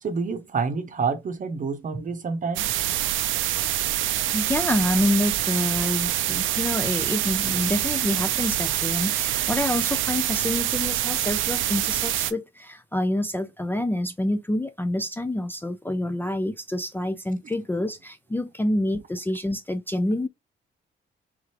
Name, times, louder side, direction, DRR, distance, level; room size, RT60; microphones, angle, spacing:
voice 1, 0.0-2.7, right 5 dB, 40° right, 0.8 m, -28 dB
sound 1, 2.6-12.3, right 13 dB, 80° right, 0.5 m, -25 dB
voice 2, 4.3-20.3, left 1 dB, 10° left, 0.4 m, -27 dB
3.7 x 3.1 x 2.9 m
cardioid pair, 90°, 20 cm